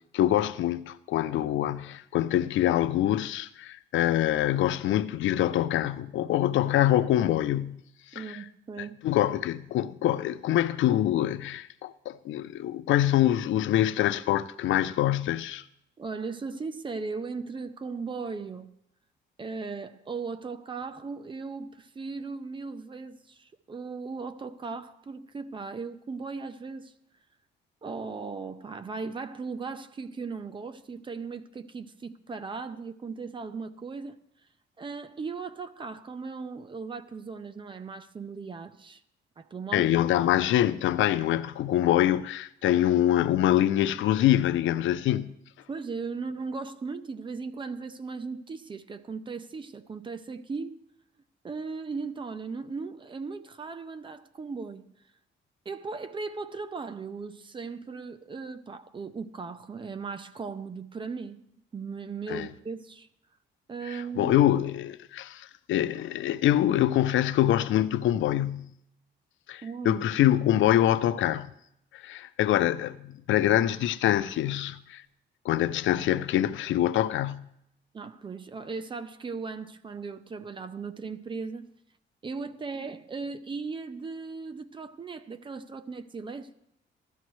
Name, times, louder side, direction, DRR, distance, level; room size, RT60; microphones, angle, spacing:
voice 1, 0.1-7.8 8.1-8.4 9.0-15.6 39.7-45.4 62.3-62.5 63.9-68.7 69.5-71.5 71.9-75.0 75.4-77.5, left 12 dB, 80° left, 0.5 m, -25 dB
voice 2, 8.1-9.0 16.0-18.7 19.4-26.9 27.8-34.2 34.8-39.0 39.4-39.9 45.7-50.8 51.4-54.9 55.7-61.4 61.7-63.1 63.7-64.3 69.6-70.0 77.9-81.7 82.2-86.5, right 4 dB, 25° right, 0.5 m, -37 dB
16.0 x 12.5 x 3.1 m
cardioid pair, 155°, 20 cm